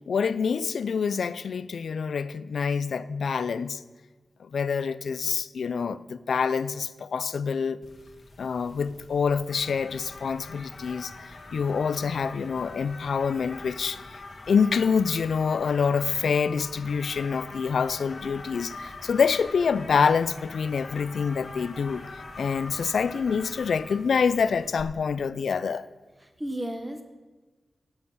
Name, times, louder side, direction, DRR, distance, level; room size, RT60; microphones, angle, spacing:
voice 1, 0.1-3.8 4.4-7.8 8.4-11.1 11.5-14.0 14.5-22.1 22.4-25.9, left 6 dB, 80° left, 0.4 m, -26 dB
sound 1, 7.8-24.8, left 3 dB, 60° left, 1.6 m, -44 dB
voice 2, 26.2-27.0, right 1 dB, 15° right, 1.2 m, -33 dB
16.0 x 5.5 x 6.1 m
cardioid pair, 65°, 0 cm